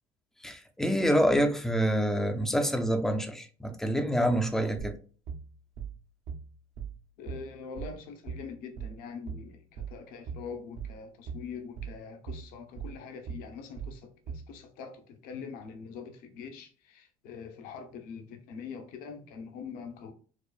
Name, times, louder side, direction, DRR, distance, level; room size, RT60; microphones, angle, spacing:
voice 1, 0.4-4.9, equal, 5° left, 0.4 m, -27 dB
sound 1, 4.8-14.6, right 6 dB, 55° right, 0.6 m, -40 dB
voice 2, 7.2-20.1, left 6 dB, 70° left, 0.9 m, -43 dB
4.7 x 2.4 x 2.4 m
cardioid pair, 145°, 15 cm